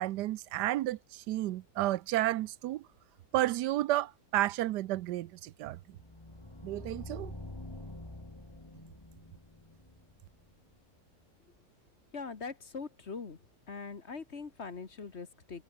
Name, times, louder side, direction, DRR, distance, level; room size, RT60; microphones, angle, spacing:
voice 1, 0.0-2.8 3.3-5.8 6.6-7.3, right 15 dB, 85° right, 1.2 m, -31 dB
sound 1, 5.9-10.8, left 2 dB, 15° left, 2.2 m, -47 dB
voice 2, 12.1-13.4 13.7-15.6, left 4 dB, 40° left, 1.8 m, -42 dB
omnidirectional pair, 1.8 m